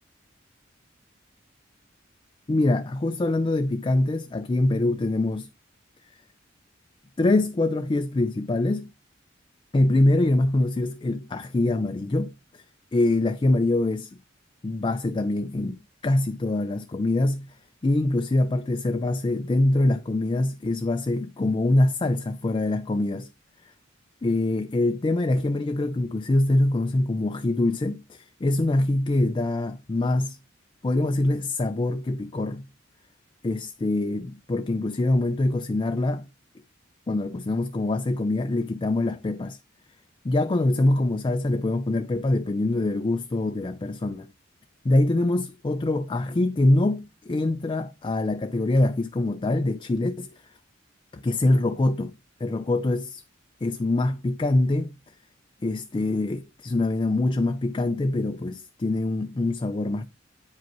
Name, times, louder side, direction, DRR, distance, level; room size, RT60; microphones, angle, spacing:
voice 1, 2.5-5.5 7.2-8.9 9.7-12.6 12.9-14.1 14.6-15.8 16.0-17.5 17.8-23.3 23.6-23.7 24.2-30.4 30.8-32.6 33.4-36.3 37.1-39.6 40.2-44.3 44.8-50.3 51.2-52.1 52.4-53.2 53.6-54.9 55.6-60.0, left 2 dB, 25° left, 0.4 m, -24 dB
9.2 x 5.1 x 3.0 m
head